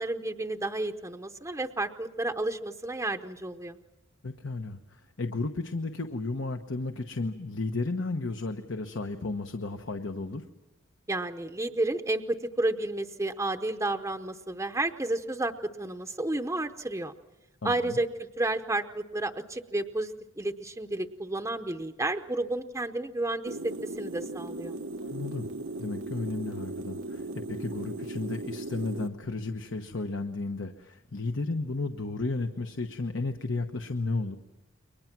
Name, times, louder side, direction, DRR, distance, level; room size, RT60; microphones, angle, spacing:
voice 1, 0.0-3.8 11.1-17.1 17.6-24.7, right 2 dB, 15° right, 6 dB, 0.8 m, -31 dB
voice 2, 4.2-10.5 17.6-18.0 25.0-25.5 25.8-34.4, left 3 dB, 70° left, 6 dB, 1.1 m, -33 dB
sound 1, 23.5-29.1, right 2 dB, 85° right, 1.2 m, -37 dB
29.5 x 23.5 x 6.0 m, 1.0 s
head